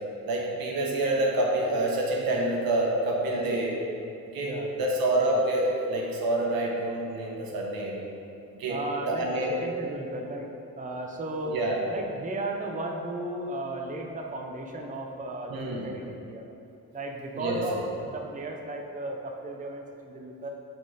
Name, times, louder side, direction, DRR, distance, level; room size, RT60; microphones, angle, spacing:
voice 1, 0.3-3.8 4.3-8.0 8.6-8.8 9.1-9.5 11.4-11.8 15.5-15.9 17.3-17.6, right 1 dB, 85° right, -2 dB, 1.1 m, -27 dB
voice 2, 4.4-4.8 8.7-10.5 10.8-11.6 11.9-16.5 16.9-20.5, right 2 dB, 20° right, 1 dB, 0.7 m, -35 dB
6.2 x 4.1 x 4.9 m, 2.7 s
cardioid pair, 85°, 35 cm